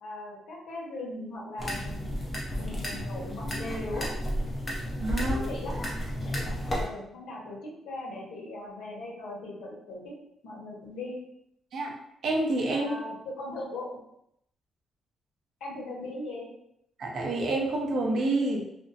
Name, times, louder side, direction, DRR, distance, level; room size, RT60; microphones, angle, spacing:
voice 1, 0.0-2.2 2.6-4.1 5.2-5.9 6.2-6.3 6.8-10.1 10.4-11.2 12.7-13.9 15.6-16.5, left 2 dB, 80° left, -3 dB, 0.8 m, -39 dB
sound 1, 1.6-6.8, equal, 20° left, 0.7 m, -32 dB
voice 2, 5.0-5.4 11.7-11.9 12.2-13.0 17.0-18.6, right 2 dB, 60° right, 0 dB, 0.6 m, -28 dB
2.5 x 2.0 x 2.6 m, 0.78 s
cardioid pair, 125°, 0 cm